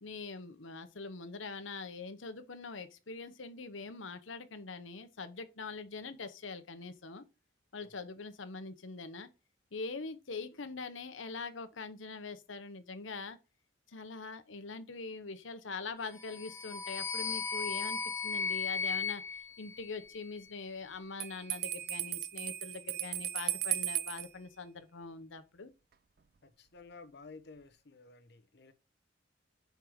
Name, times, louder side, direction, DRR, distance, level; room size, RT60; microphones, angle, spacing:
voice 1, 0.0-7.2 7.7-9.3 9.7-13.4 13.9-25.7, left 4 dB, 90° left, 1.0 m, -43 dB
sound 1, 16.2-20.5, left 5 dB, 15° left, 0.3 m, -36 dB
Bell, 21.2-24.3, right 13 dB, 50° right, 0.5 m, -36 dB
voice 2, 26.4-28.7, left 3 dB, 60° left, 0.9 m, -53 dB
5.4 x 4.6 x 6.3 m
head